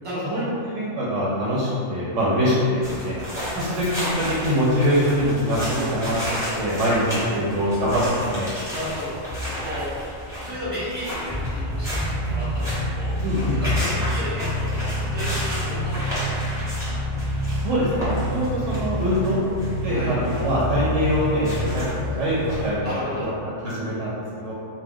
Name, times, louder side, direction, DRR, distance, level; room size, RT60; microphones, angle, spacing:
voice 1, 0.0-0.5 7.3-7.4 8.7-9.1 9.5-9.9 10.4-11.9 12.2-13.1 13.6-16.4 19.9-20.1 22.8-23.3, equal, 30° right, -10 dB, 0.9 m, -33 dB
voice 2, 0.7-3.2 3.6-8.5 13.2-13.6 17.6-19.4 19.8-23.0 23.4-24.1 24.4-24.5, equal, 75° right, -7 dB, 0.9 m, -23 dB
sound 1, 2.8-22.7, equal, 5° right, 0.8 m, -28 dB
2.2 x 2.2 x 3.4 m, 2.4 s
omnidirectional pair, 1.3 m